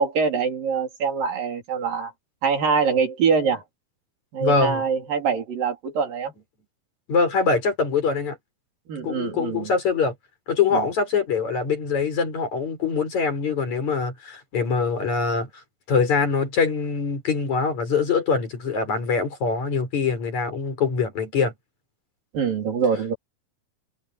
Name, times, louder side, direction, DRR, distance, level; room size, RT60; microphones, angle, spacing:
voice 1, 0.0-2.1 2.4-3.6 4.3-6.3 8.9-9.7 10.7-10.8 22.3-23.2, right 5 dB, 70° right, 5.0 m, -24 dB
voice 2, 4.4-4.8 7.1-8.4 9.0-10.1 10.5-15.5 15.9-21.5, left 5 dB, 50° left, 6.1 m, -23 dB
omnidirectional pair, 4.2 m